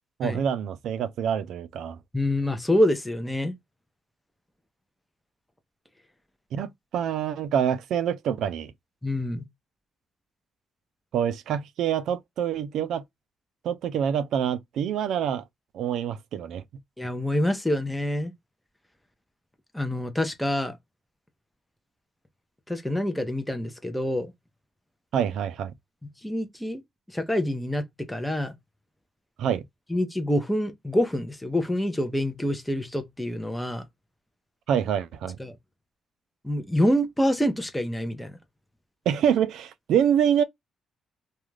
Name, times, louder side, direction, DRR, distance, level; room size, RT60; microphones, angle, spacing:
voice 1, 0.2-2.0 6.5-8.7 11.1-13.0 13.6-15.4 15.7-16.6 25.1-25.7 29.4-29.6 34.7-35.4 39.1-40.4, right 9 dB, 75° right, 0.3 m, -26 dB
voice 2, 2.1-3.5 9.0-9.4 17.0-18.3 19.7-20.8 22.7-24.3 26.2-26.8 27.1-28.5 29.9-33.8 35.4-35.5 36.4-38.4, left 1 dB, 5° left, 0.6 m, -26 dB
2.4 x 2.2 x 3.1 m
cardioid pair, 90°, 0 cm